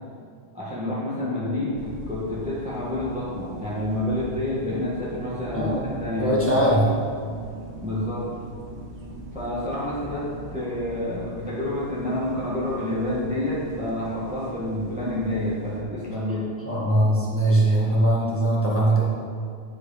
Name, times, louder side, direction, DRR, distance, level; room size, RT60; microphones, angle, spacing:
voice 1, 0.5-6.6 7.8-8.3 9.3-16.5, left 1 dB, 5° right, -8 dB, 1.4 m, -28 dB
sound 1, 1.8-15.8, right 1 dB, 75° right, 1.2 m, -40 dB
voice 2, 5.5-5.9 6.2-6.9 16.7-19.0, right 1 dB, 10° left, -7 dB, 1.7 m, -21 dB
9.7 x 4.9 x 4.9 m, 2.2 s
omnidirectional pair, 1.1 m